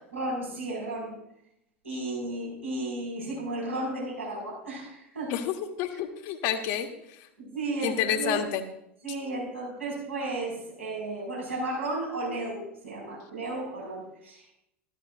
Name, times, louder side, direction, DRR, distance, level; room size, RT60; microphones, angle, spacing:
voice 1, 0.1-1.2 1.8-5.3 7.4-8.5 9.0-14.5, right 2 dB, 80° right, -4 dB, 5.4 m, -34 dB
voice 2, 5.3-6.9 7.8-8.6, left 9 dB, 50° left, 6 dB, 1.4 m, -29 dB
14.5 x 13.0 x 2.6 m, 0.79 s
figure-of-eight pair, 80°, 7 cm